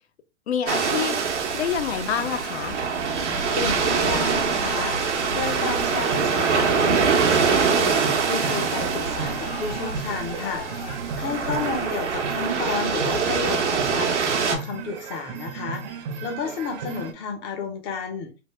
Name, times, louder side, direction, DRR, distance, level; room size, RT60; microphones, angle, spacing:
voice 1, 0.5-1.2 1.5-2.8 11.6-11.9 17.0-17.1, left 8 dB, 65° left, 0.6 m, -28 dB
sound 1, 0.7-14.6, right 5 dB, 90° right, 0.8 m, -24 dB
sound 2, 3.3-11.0, left 7 dB, 50° left, 0.9 m, -41 dB
voice 2, 3.5-7.9 8.2-10.7 11.2-15.8 16.2-18.3, left 5 dB, 20° left, 0.4 m, -31 dB
sound 3, 5.4-17.1, right 6 dB, 40° right, 0.5 m, -36 dB
3.3 x 2.1 x 3.2 m
hypercardioid pair, 125°, 34 cm